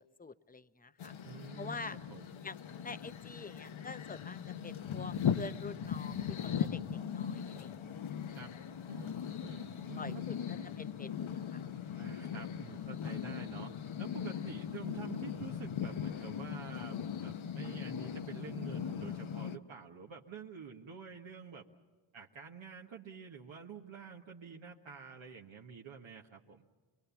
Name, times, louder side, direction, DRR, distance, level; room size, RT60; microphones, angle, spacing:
voice 1, 0.0-1.1 1.6-2.0 2.4-7.7 10.0-10.3 10.8-11.6, left 4 dB, 15° left, 13 dB, 0.8 m, -46 dB
sound 1, 1.0-19.6, left 8 dB, 70° left, 1.0 m, -39 dB
voice 2, 1.2-2.3 8.3-8.5 8.9-10.2 11.9-13.7 14.0-21.7 22.1-26.6, right 6 dB, 65° right, 0 dB, 1.4 m, -48 dB
25.0 x 22.0 x 7.1 m, 1.5 s
cardioid pair, 70°, 50 cm